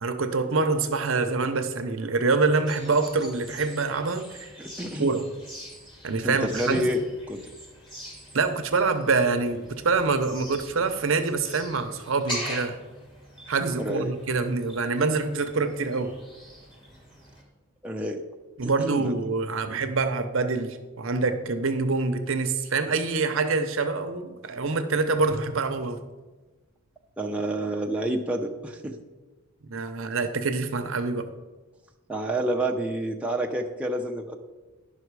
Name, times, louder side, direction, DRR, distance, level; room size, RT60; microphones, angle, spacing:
voice 1, 0.0-4.5 5.0-5.3 6.0-6.9 8.3-12.8 13.5-16.1 18.6-26.0 29.7-31.3, right 4 dB, 60° right, 8 dB, 0.7 m, -25 dB
sound 1, 2.6-17.4, equal, 20° left, 2.0 m, -43 dB
voice 2, 4.6-5.1 6.2-7.0 7.3-7.4 13.8-14.1 17.8-18.2 18.6-19.1 27.2-29.0 32.1-34.4, right 1 dB, 5° right, 0 dB, 0.5 m, -28 dB
11.0 x 5.8 x 4.7 m, 1.2 s
head